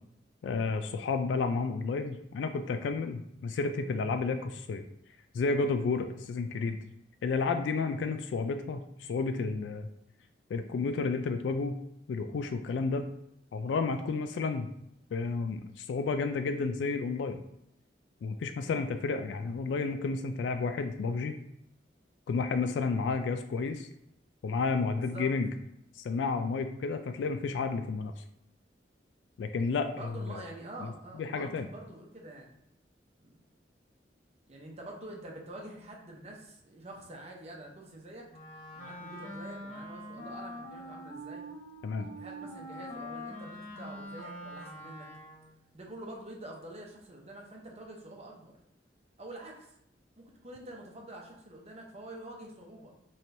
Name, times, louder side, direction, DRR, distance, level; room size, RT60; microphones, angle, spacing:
voice 1, 0.4-4.8 5.3-6.8 7.2-9.9 10.5-11.8 12.1-13.1 13.5-14.7 15.1-17.4 18.2-21.4 22.3-23.9 24.4-25.5 26.0-28.1 29.4-30.4 30.8-30.9 31.2-31.7 41.8-42.1, left 4 dB, 85° left, 8 dB, 0.3 m, -31 dB
voice 2, 24.9-25.3 29.8-32.6 33.2-33.3 34.5-38.2 38.7-41.4 42.1-45.1 45.7-48.5 49.2-49.7 50.2-52.9, right 1 dB, 35° right, 0 dB, 0.8 m, -46 dB
Wind instrument woodwind instrument, 38.3-45.5, equal, 45° left, 1.2 m, -44 dB
4.3 x 3.2 x 2.6 m, 0.77 s
head